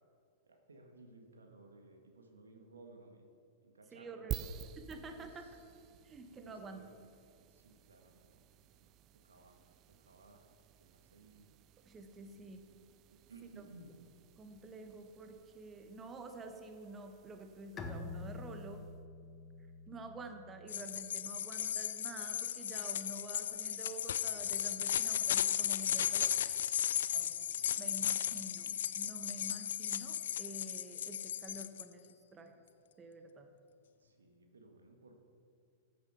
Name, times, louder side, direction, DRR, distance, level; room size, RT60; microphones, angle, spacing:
voice 1, 0.5-3.3 3.6-4.5 5.2-5.3 6.4-6.9 7.5-8.4 9.2-9.6 10.0-10.5 10.9-11.5 12.2-12.3 13.3-13.9 27.1-27.2 27.7-27.8 34.0-35.1, right 3 dB, 75° right, 3 dB, 1.7 m, -57 dB
voice 2, 3.9-4.3 4.9-5.5 6.0-6.8 11.8-12.6 14.4-18.8 19.9-26.4 27.8-32.5 33.0-33.5, right 2 dB, 20° right, 6 dB, 1.2 m, -49 dB
sound 1, 4.3-19.0, right 10 dB, 35° right, 0.4 m, -51 dB
Bowed string instrument, 17.8-21.2, left 3 dB, 20° left, 1.3 m, -47 dB
sound 2, 20.7-31.8, left 10 dB, 65° left, 0.4 m, -35 dB
14.5 x 8.6 x 5.9 m, 2.4 s
figure-of-eight pair, 100°, 0 cm